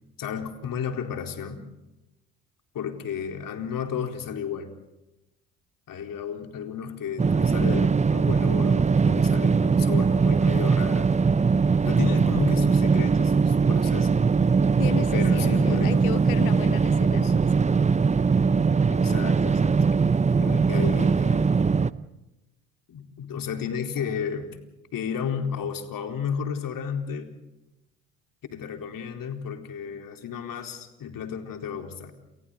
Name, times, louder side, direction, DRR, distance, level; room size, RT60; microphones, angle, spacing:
voice 1, 0.2-1.6 2.7-4.7 5.9-11.1 11.8-14.1 15.1-16.0 17.2-17.3 18.9-19.7 20.4-21.5 22.9-24.6 24.9-27.3 28.5-32.1, left 7 dB, 50° left, 4.2 m, -33 dB
sound 1, 7.2-21.9, right 5 dB, 15° right, 0.8 m, -21 dB
voice 2, 14.8-17.7, left 18 dB, 75° left, 0.9 m, -35 dB
30.0 x 29.5 x 4.0 m
hypercardioid pair, 55°, 44 cm